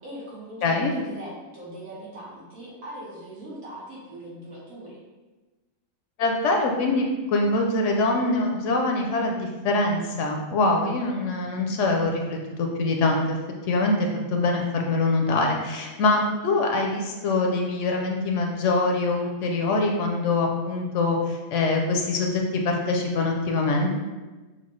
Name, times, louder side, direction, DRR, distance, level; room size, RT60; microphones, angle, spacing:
voice 1, 0.0-5.0, right 1 dB, 75° right, -7 dB, 1.8 m, -40 dB
voice 2, 0.6-0.9 6.2-13.4 13.6-23.9, left 2 dB, 70° left, 1 dB, 0.8 m, -24 dB
5.7 x 2.4 x 3.0 m, 1.2 s
omnidirectional pair, 1.4 m